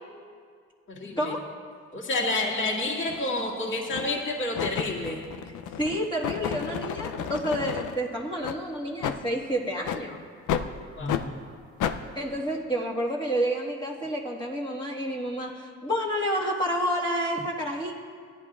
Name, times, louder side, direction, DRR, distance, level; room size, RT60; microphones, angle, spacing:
voice 1, 0.9-1.4 1.9-5.2 11.0-11.2, left 2 dB, 40° left, -4 dB, 2.1 m, -29 dB
sound 1, 3.1-3.2 3.9-4.2 4.5-7.9 8.4-8.6 9.0-9.2 9.8-10.0 10.5-10.7 11.1-11.2 11.8-12.0, left 9 dB, 80° left, 0.6 m, -31 dB
voice 2, 5.8-10.2 12.2-17.9, equal, 15° left, -5 dB, 1.7 m, -29 dB
17.0 x 10.5 x 2.4 m, 2.1 s
cardioid pair, 90°, 30 cm